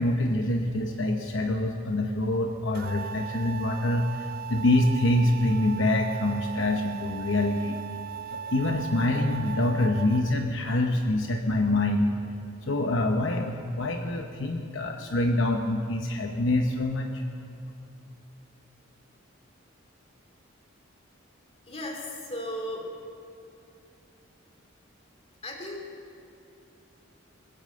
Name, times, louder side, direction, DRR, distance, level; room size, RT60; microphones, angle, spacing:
voice 1, 0.0-7.8 8.3-12.1 12.6-17.2, left 1 dB, 65° left, 4 dB, 0.9 m, -26 dB
sound 1, 2.7-10.4, right 8 dB, 45° right, 0.4 m, -38 dB
voice 2, 21.6-22.9 25.4-25.9, left 1 dB, 30° left, 1 dB, 2.5 m, -35 dB
20.5 x 8.9 x 7.7 m, 2.6 s
head